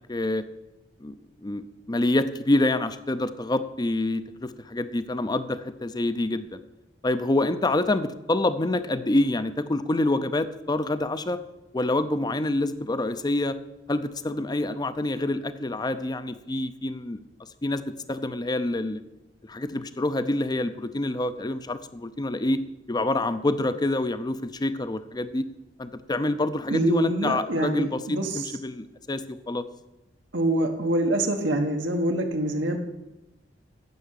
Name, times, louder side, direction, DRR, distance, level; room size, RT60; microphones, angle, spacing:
voice 1, 0.1-0.4 1.0-1.2 1.4-6.6 7.0-11.4 11.7-13.6 13.9-17.2 17.6-17.8 18.1-19.0 19.5-22.6 22.9-25.5 25.8-29.6, left 2 dB, 25° left, 12 dB, 0.5 m, -27 dB
voice 2, 26.7-28.5 30.3-32.8, right 1 dB, 85° right, 3 dB, 1.2 m, -25 dB
9.4 x 6.8 x 8.2 m, 0.97 s
head